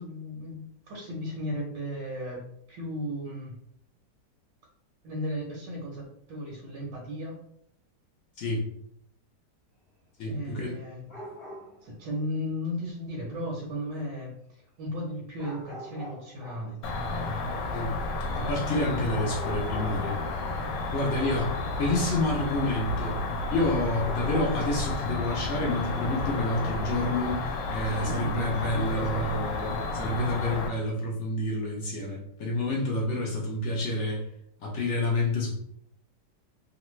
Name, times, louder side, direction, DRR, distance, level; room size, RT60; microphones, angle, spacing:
voice 1, 0.0-2.4 2.7-3.6 5.0-7.4 10.3-11.2 11.8-17.4 27.8-29.5 29.8-30.6, equal, 80° right, -4 dB, 1.4 m, -36 dB
voice 2, 10.2-10.8 17.7-17.9 18.3-20.2 20.9-23.2 23.5-27.4 27.7-34.2 34.6-35.6, left 2 dB, 65° left, -1 dB, 0.7 m, -29 dB
sound 1, 11.1-12.0 15.4-16.8 19.0-20.6 21.3-21.7 24.0-25.4, equal, 25° left, 1.1 m, -42 dB
Cricket, 16.8-30.7, left 2 dB, 80° left, 1.2 m, -32 dB
3.2 x 2.1 x 3.0 m, 0.71 s
omnidirectional pair, 1.9 m